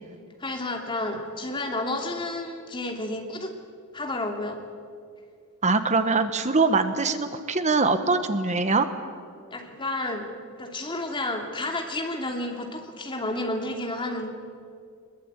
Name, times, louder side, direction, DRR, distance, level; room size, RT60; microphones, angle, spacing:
voice 1, 0.4-3.5 3.9-4.6 9.5-10.3 10.6-14.3, left 2 dB, 25° left, 2 dB, 2.8 m, -31 dB
voice 2, 5.6-8.9, right 3 dB, 35° right, 9 dB, 1.2 m, -23 dB
22.0 x 21.5 x 8.9 m, 2.2 s
head